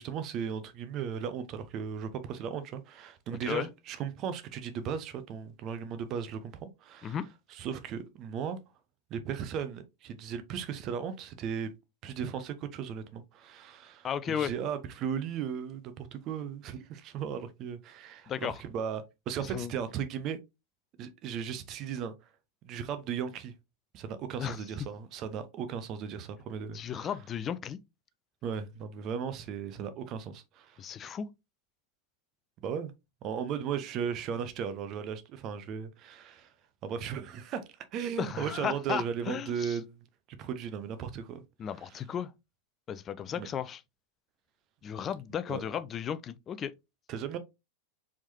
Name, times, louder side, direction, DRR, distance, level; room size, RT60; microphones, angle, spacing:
voice 1, 0.0-7.2 7.5-8.6 9.1-11.7 12.0-20.4 21.0-22.1 22.6-23.5 23.9-27.1 28.4-30.8 32.6-32.9 33.2-36.5 36.8-40.0 40.4-41.4 41.8-42.0 43.3-43.5 45.5-45.6 47.1-47.4, right 7 dB, 35° right, 0.7 m, -36 dB
voice 2, 14.0-14.5 18.3-18.6 19.5-19.7 24.4-24.6 26.7-27.8 30.8-31.3 38.2-39.8 41.6-42.3 42.9-43.8 44.8-46.7, left 8 dB, 25° left, 0.4 m, -34 dB
4.4 x 3.6 x 2.7 m
figure-of-eight pair, 90°, 0 cm